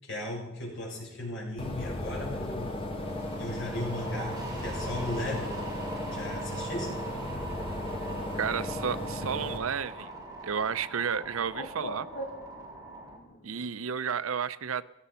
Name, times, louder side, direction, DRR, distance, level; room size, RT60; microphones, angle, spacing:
voice 1, 0.0-2.8 3.4-5.6 6.0-7.0, left 1 dB, 60° left, -3 dB, 7.4 m, -36 dB
sound 1, 1.6-9.6, left 1 dB, 25° left, 1.9 m, -35 dB
sound 2, 2.9-13.2, right 3 dB, 20° right, 3.7 m, -43 dB
Bird, 8.2-13.7, equal, 45° left, 2.4 m, -46 dB
voice 2, 8.4-10.1 10.4-12.1 13.4-14.9, right 7 dB, 80° right, 15 dB, 0.6 m, -32 dB
16.5 x 14.5 x 5.7 m, 0.86 s
head